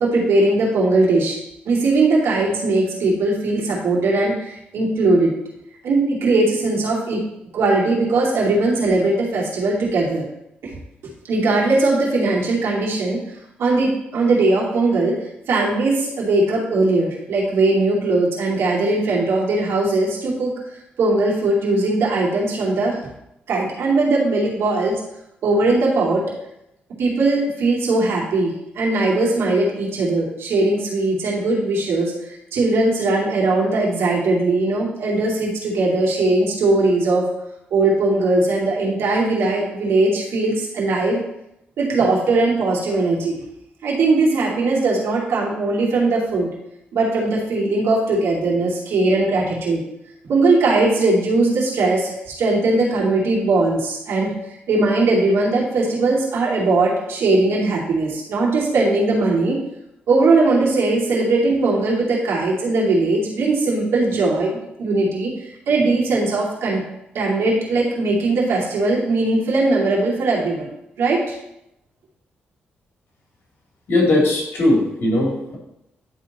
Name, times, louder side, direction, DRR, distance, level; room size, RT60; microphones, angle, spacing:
voice 1, 0.0-1.4 1.7-5.3 5.8-7.2 7.5-10.2 11.3-13.2 13.6-15.2 15.5-23.0 23.5-24.9 25.4-26.3 27.0-37.2 37.7-41.2 41.8-43.3 43.8-46.5 46.9-49.8 50.3-54.3 54.7-59.6 60.1-66.8 67.1-70.7 71.0-71.2, right 2 dB, 80° right, -4 dB, 2.7 m, -19 dB
voice 2, 73.9-75.6, left 1 dB, 70° left, -2 dB, 2.8 m, -18 dB
11.0 x 3.8 x 4.2 m, 0.82 s
cardioid pair, 70°, 4 cm